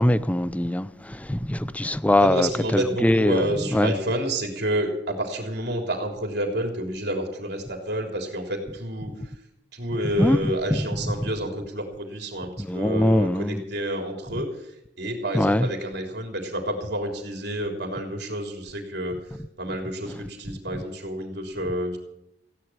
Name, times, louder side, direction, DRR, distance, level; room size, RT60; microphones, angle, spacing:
voice 1, 0.0-3.5 3.7-3.9 10.2-10.4 10.7-10.8 12.6-13.6 15.3-15.7, left 1 dB, 10° left, 0.6 m, -22 dB
voice 2, 2.2-9.2 9.7-14.5 15.0-19.2 19.6-22.0, right 1 dB, 65° right, 3.5 m, -29 dB
16.0 x 10.5 x 7.4 m
head